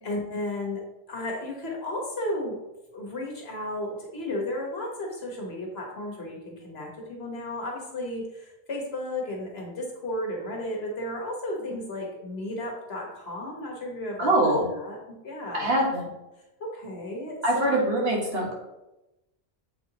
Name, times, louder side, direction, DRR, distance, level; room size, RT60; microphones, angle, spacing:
voice 1, 0.0-2.6 2.9-14.3 14.8-15.8 16.6-17.8, left 1 dB, 75° left, -1 dB, 1.6 m, -34 dB
voice 2, 14.2-14.7 15.5-16.1 17.4-18.5, right 1 dB, 70° right, -2 dB, 1.8 m, -24 dB
7.5 x 4.3 x 2.9 m, 0.95 s
omnidirectional pair, 1.1 m